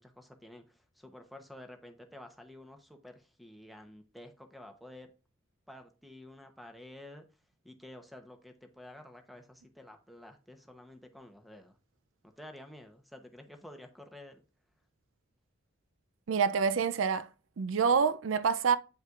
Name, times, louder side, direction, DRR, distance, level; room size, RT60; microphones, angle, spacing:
voice 1, 0.0-5.1 5.7-7.3 7.6-11.8 12.4-14.4, left 1 dB, ahead, 0.8 m, -51 dB
voice 2, 16.3-17.3 17.6-18.8, right 6 dB, 85° right, 0.4 m, -27 dB
9.1 x 5.5 x 2.4 m
head